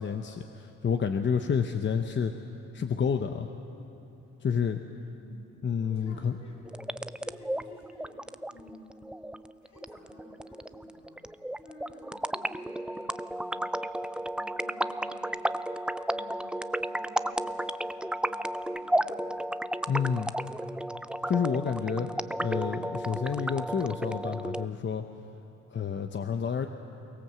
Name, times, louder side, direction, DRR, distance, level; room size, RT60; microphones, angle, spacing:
voice 1, 0.0-2.3 2.7-3.5 4.4-4.8 5.6-6.4 19.9-20.3 21.3-22.1 22.4-25.0 25.7-26.7, left 7 dB, 40° left, 6 dB, 0.9 m, -29 dB
voice 2, 5.0-6.7 7.2-8.2 8.5-9.1 9.6-11.3 11.6-14.0 14.3-15.5 16.1-17.7 18.2-19.6, left 1 dB, 70° left, -2 dB, 6.9 m, -54 dB
sound 1, 6.6-24.6, right 1 dB, 5° right, 0.4 m, -33 dB
23.0 x 17.5 x 7.6 m, 2.9 s
cardioid pair, 90°, 30 cm